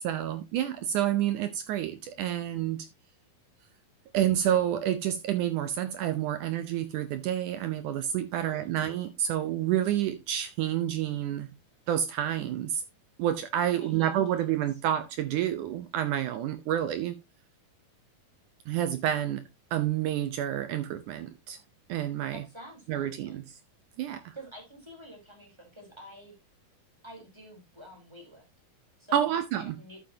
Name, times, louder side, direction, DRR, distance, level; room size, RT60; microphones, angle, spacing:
voice 1, 0.0-2.9 4.1-11.5 11.9-12.8 13.2-17.2 18.7-19.4 19.7-21.6 21.9-22.4 22.9-23.4 24.0-24.3 29.1-29.7, right 11 dB, 75° right, 1.9 m, -29 dB
voice 2, 8.3-8.7 13.7-14.1 22.3-23.4 24.3-26.3 27.0-28.5 29.0-29.3 29.6-30.0, equal, 5° right, 3.4 m, -48 dB
12.0 x 7.5 x 2.8 m
omnidirectional pair, 4.2 m